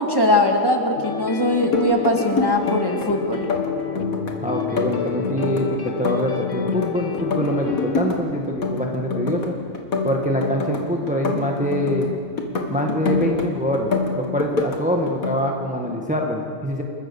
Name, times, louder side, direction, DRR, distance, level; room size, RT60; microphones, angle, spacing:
voice 1, 0.0-3.4, left 1 dB, 15° left, 1 dB, 1.8 m, -20 dB
sound 1, 1.0-8.0, left 6 dB, 60° left, 1.5 m, -30 dB
sound 2, 1.5-3.1 3.3-4.3 4.6-6.9 7.1-8.2 8.4-9.5 9.7-12.1 12.4-13.5 13.7-14.8 15.1-15.4, left 4 dB, 90° left, 2.3 m, -25 dB
voice 2, 4.4-9.5 10.0-12.1 12.7-13.9 14.1-16.8, equal, 5° right, 1 dB, 1.4 m, -24 dB
29.0 x 13.0 x 7.1 m, 2.4 s
omnidirectional pair, 1.4 m